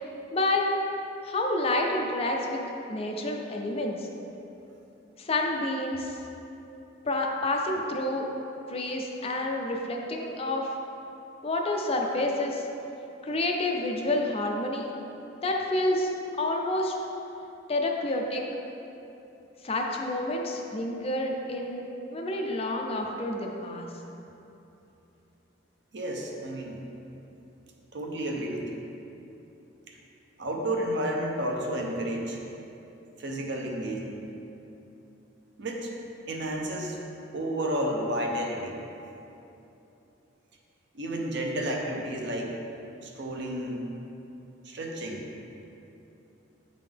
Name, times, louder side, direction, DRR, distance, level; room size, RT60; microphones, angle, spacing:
voice 1, 0.3-0.8 1.2-2.6 2.9-4.0 5.2-6.2 7.0-8.3 8.7-10.7 11.4-12.7 13.2-14.9 15.4-16.1 16.4-17.0 17.7-18.4 19.6-21.8 22.1-23.9, left 2 dB, 30° left, 1 dB, 0.5 m, -28 dB
voice 2, 25.9-26.8 27.9-28.8 30.4-32.4 33.2-34.3 35.6-35.9 36.3-37.0 37.3-38.8 40.9-42.5 43.0-43.9 44.6-45.3, right 1 dB, 65° right, 0 dB, 0.7 m, -31 dB
8.2 x 3.7 x 3.4 m, 2.9 s
head